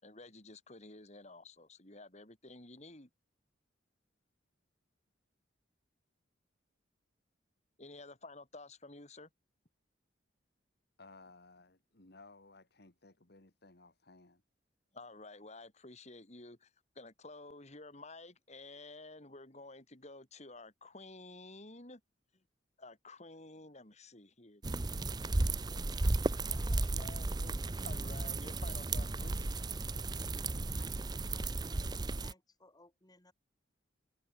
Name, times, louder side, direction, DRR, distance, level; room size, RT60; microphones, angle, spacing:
voice 1, 0.0-3.1 7.8-9.3 14.9-16.7 17.0-22.0 22.8-25.0 25.6-25.9 26.3-29.5, left 2 dB, 35° left, 3.5 m, -52 dB
voice 2, 11.0-14.4, left 3 dB, 55° left, 2.1 m, -58 dB
sound 1, 24.6-32.3, right 2 dB, 20° right, 0.6 m, -34 dB
voice 3, 26.2-27.1 27.6-27.7 30.7-33.3, left 2 dB, 20° left, 4.4 m, -62 dB
head